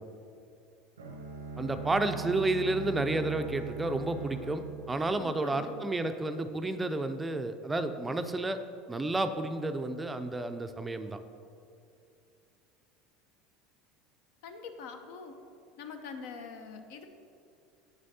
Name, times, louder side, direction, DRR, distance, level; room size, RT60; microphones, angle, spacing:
Bowed string instrument, 1.0-5.9, right 5 dB, 90° right, 0.6 m, -41 dB
voice 1, 1.6-8.6 8.9-11.2, right 2 dB, 15° right, 9 dB, 0.4 m, -31 dB
voice 2, 5.2-5.8 14.4-15.3 15.8-17.1, left 5 dB, 70° left, 6 dB, 0.5 m, -44 dB
7.4 x 6.3 x 2.7 m, 2.5 s
hypercardioid pair, 80°, 0 cm